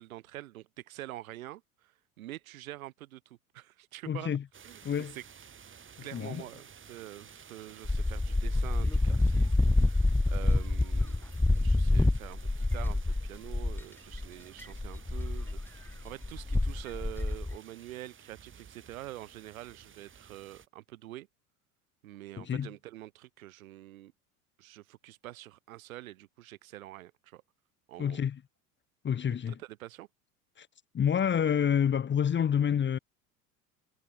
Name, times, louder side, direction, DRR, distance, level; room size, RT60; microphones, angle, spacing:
voice 1, 0.0-4.3 4.6-5.2 6.0-11.2 11.5-21.3 22.0-24.1 24.6-27.4 27.9-28.2 29.5-30.1, right 15 dB, 65° right, 4.4 m, -46 dB
voice 2, 4.1-4.4 4.8-5.2 6.0-6.4 22.4-22.7 28.0-28.4 29.0-29.6 30.6-30.7 30.9-33.0, left 8 dB, 25° left, 1.7 m, -28 dB
sound 1, 4.5-20.7, right 7 dB, 25° right, 7.7 m, -54 dB
sound 2, 7.8-13.8 14.1-14.3 14.6-17.6, left 2 dB, 5° left, 0.9 m, -27 dB
figure-of-eight pair, 75°, 44 cm